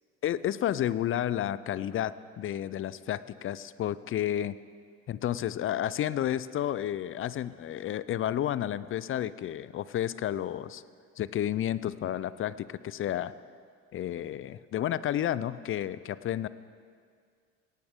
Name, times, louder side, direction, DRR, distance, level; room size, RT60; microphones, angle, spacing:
voice 1, 0.2-4.5 5.1-10.8 11.2-13.3 13.9-16.5, left 11 dB, 40° left, 17 dB, 0.6 m, -31 dB
17.5 x 17.5 x 3.7 m, 2.1 s
hypercardioid pair, 65°, 33 cm